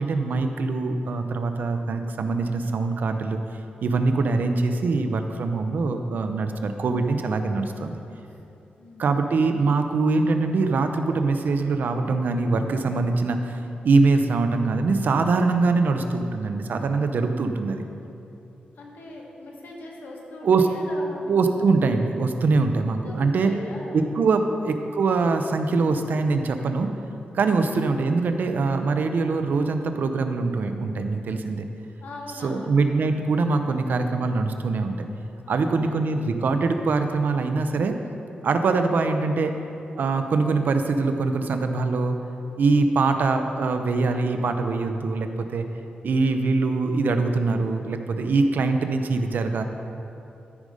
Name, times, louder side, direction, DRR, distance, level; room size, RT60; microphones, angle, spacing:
voice 1, 0.0-3.4 3.8-8.0 9.0-13.6 13.8-17.8 20.4-20.7 21.3-23.5 23.9-26.9 27.3-31.6 32.4-35.1 35.5-38.0 38.4-39.5 40.0-42.1 42.6-45.7 46.0-49.6, right 3 dB, 65° right, 7 dB, 0.6 m, -23 dB
voice 2, 18.7-21.5 22.7-24.2 24.4-24.6 32.0-32.8 35.4-36.1, left 2 dB, 75° left, -2 dB, 1.7 m, -40 dB
13.0 x 5.0 x 5.3 m, 2.8 s
wide cardioid pair, 140°, 3 cm